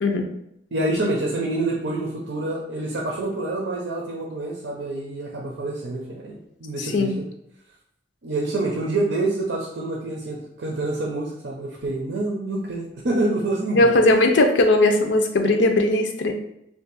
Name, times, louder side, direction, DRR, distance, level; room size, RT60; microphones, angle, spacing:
voice 1, 0.7-7.1 8.2-14.0, right 2 dB, 80° right, -2 dB, 0.6 m, -27 dB
voice 2, 6.8-7.1 13.8-16.3, left 2 dB, 80° left, 4 dB, 0.5 m, -18 dB
2.7 x 2.4 x 3.9 m, 0.77 s
head